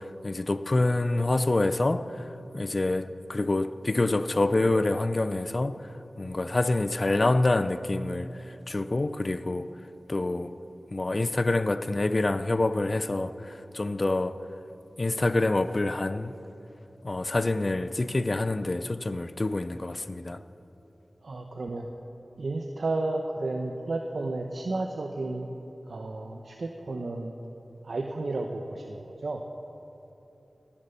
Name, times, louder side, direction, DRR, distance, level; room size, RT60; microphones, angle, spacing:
voice 1, 0.0-5.9 6.2-9.7 10.1-10.6 10.9-14.4 15.0-16.3 17.0-20.4, left 2 dB, 45° left, 0.6 m, -27 dB
voice 2, 21.2-21.9 22.4-25.5 25.9-27.3 27.8-29.4, right 2 dB, 75° right, 0.9 m, -32 dB
17.5 x 10.5 x 6.8 m
wide cardioid pair, 55°, 0 cm